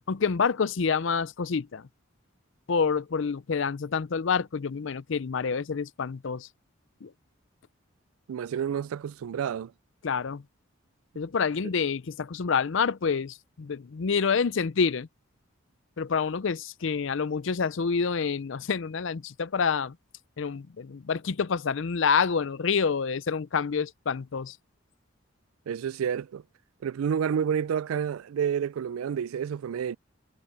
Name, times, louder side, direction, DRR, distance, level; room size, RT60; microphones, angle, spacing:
voice 1, 0.1-1.9 2.7-6.5 7.0-7.1 10.0-10.4 11.2-15.1 16.0-20.0 20.4-24.6, left 5 dB, 65° left, 0.5 m, -27 dB
voice 2, 8.3-9.7 25.7-26.4 26.8-30.0, right 8 dB, 85° right, 0.3 m, -29 dB
head